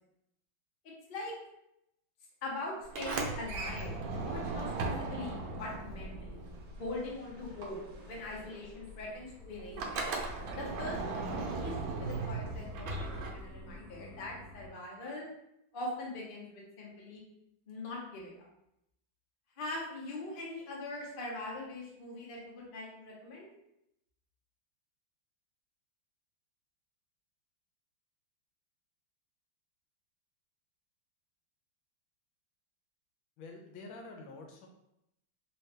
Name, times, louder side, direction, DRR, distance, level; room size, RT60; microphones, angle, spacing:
voice 1, 0.8-1.3 2.4-6.4 6.8-7.8 8.1-10.1 10.5-15.2 15.7-17.2 17.7-18.3 19.6-23.5, left 2 dB, 45° left, -3 dB, 0.6 m, -42 dB
Sliding door, 2.8-7.1 7.4-13.8, right 3 dB, 80° right, 1.4 m, -37 dB
sound 1, 5.3-14.7, equal, 60° right, 1.0 m, -53 dB
voice 2, 33.4-34.7, left 3 dB, 80° left, 1 dB, 1.4 m, -47 dB
3.4 x 2.8 x 3.3 m, 0.82 s
omnidirectional pair, 2.2 m